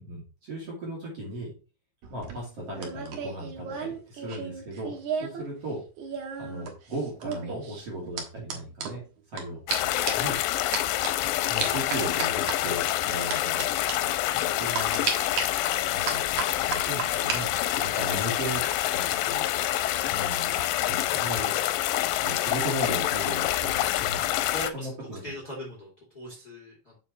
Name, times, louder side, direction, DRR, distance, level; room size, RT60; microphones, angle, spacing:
voice 1, 0.0-1.5 2.1-4.9 5.2-5.8 6.4-9.0 9.3-10.4 11.5-14.1 14.6-15.1 15.9-16.2 16.7-18.7 18.9-19.5 20.1-20.5 20.9-21.5 22.2-24.3 24.7-25.2, right 1 dB, 40° right, -4 dB, 3.3 m, -36 dB
sound 1, 2.0-5.4 5.7-9.4 9.7-9.8 10.1-10.3 10.7-11.1 11.6-12.6 13.3-13.6 13.9-14.0 14.7-15.4 16.1-17.4 17.7-18.1, right 5 dB, 60° right, 2.2 m, -33 dB
sound 2, 9.7-24.7, left 14 dB, 85° left, 2.8 m, -27 dB
voice 2, 24.4-24.9 25.2-25.9 26.1-27.0, equal, 30° left, -3 dB, 2.3 m, -40 dB
6.9 x 6.9 x 3.2 m, 0.33 s
omnidirectional pair, 5.0 m